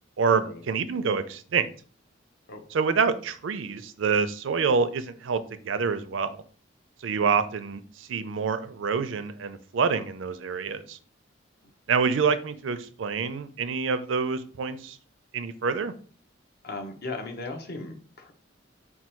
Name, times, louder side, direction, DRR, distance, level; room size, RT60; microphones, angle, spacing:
voice 1, 0.2-1.7 2.7-6.4 7.0-11.0 11.9-15.0 15.3-15.9, right 5 dB, 80° right, 11 dB, 0.5 m, -27 dB
voice 2, 16.6-18.3, left 2 dB, 55° left, 4 dB, 0.8 m, -37 dB
4.5 x 2.3 x 4.3 m, 0.43 s
head